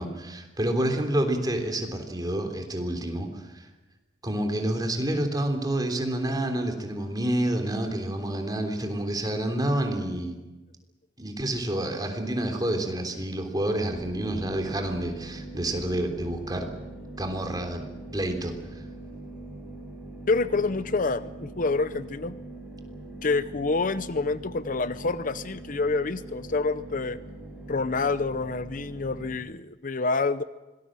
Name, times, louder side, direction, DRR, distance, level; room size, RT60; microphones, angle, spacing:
voice 1, 0.0-3.6 4.2-10.4 11.2-16.7 17.2-17.8 18.1-18.5, right 1 dB, 20° right, 5 dB, 3.4 m, -28 dB
sound 1, 13.9-29.4, right 2 dB, 5° right, 5.5 m, -42 dB
voice 2, 20.3-22.4 23.2-27.2 27.7-30.4, left 3 dB, 50° left, 14 dB, 0.7 m, -27 dB
25.5 x 19.0 x 7.6 m, 1.1 s
head